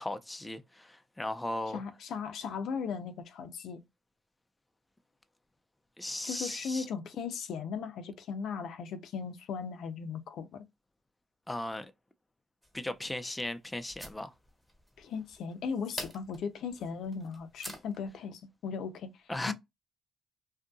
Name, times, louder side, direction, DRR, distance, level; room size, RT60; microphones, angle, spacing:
voice 1, 0.0-1.8 6.0-6.9 11.5-11.9 12.7-14.3 19.3-19.5, left 1 dB, 10° left, 0.4 m, -37 dB
voice 2, 1.7-3.8 6.2-10.6 15.0-19.1 19.5-19.6, left 6 dB, 75° left, 0.5 m, -37 dB
sound 1, 12.6-18.1, right 1 dB, 5° right, 1.2 m, -48 dB
2.7 x 2.6 x 2.3 m
cardioid pair, 90°, 0 cm